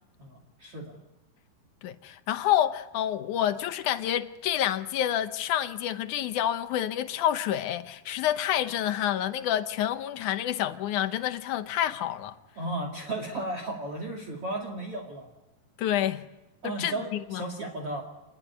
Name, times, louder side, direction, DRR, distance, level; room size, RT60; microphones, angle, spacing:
voice 1, 0.2-1.0 12.6-15.3 16.6-18.0, right 2 dB, 40° right, 3.1 m, -34 dB
voice 2, 1.8-12.4 15.8-16.2 16.6-17.4, left 11 dB, 70° left, 2.0 m, -28 dB
28.0 x 21.5 x 9.7 m
omnidirectional pair, 4.6 m